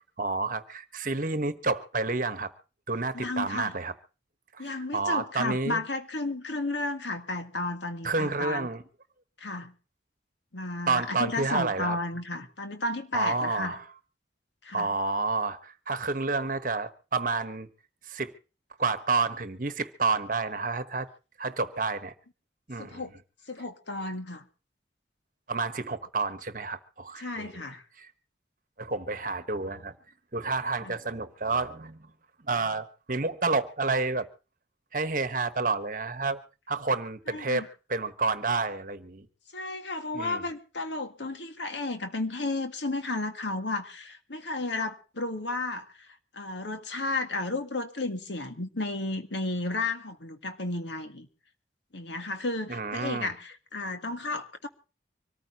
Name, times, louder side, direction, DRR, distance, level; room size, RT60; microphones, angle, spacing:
voice 1, 0.2-2.5 2.9-3.9 4.5-5.8 8.0-8.8 10.9-12.0 13.1-13.8 14.7-17.7 18.1-18.3 18.8-21.1 21.4-22.1 22.7-23.0 25.5-27.5 28.0-28.1 28.8-29.9 30.3-32.1 32.4-34.3 34.9-36.4 36.7-39.3 40.1-40.4 52.7-53.3, right 3 dB, 45° right, 1.2 m, -29 dB
voice 2, 3.1-3.7 4.6-8.7 9.4-9.7 10.5-13.8 14.6-14.9 22.8-23.1 23.5-24.4 27.2-27.8 30.8-30.9 37.3-37.7 39.5-46.1 46.3-51.3 51.9-54.7, left 2 dB, 80° left, 1.9 m, -33 dB
25.0 x 14.0 x 2.9 m
head